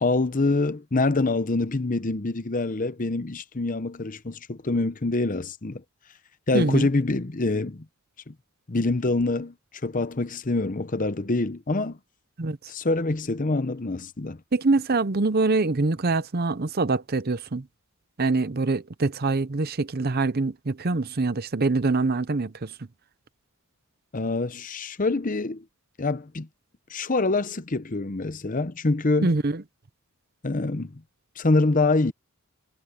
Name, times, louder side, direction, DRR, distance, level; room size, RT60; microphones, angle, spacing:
voice 1, 0.0-5.8 6.5-7.8 8.3-8.4 8.7-9.5 9.8-12.0 12.7-14.4 24.1-25.6 26.0-26.5 26.9-29.4 30.4-31.0 31.4-32.1, left 2 dB, 35° left, 0.8 m, -25 dB
voice 2, 6.5-6.9 12.4-12.6 14.5-17.6 18.2-22.7 29.2-29.6, right 3 dB, 45° right, 0.7 m, -24 dB
head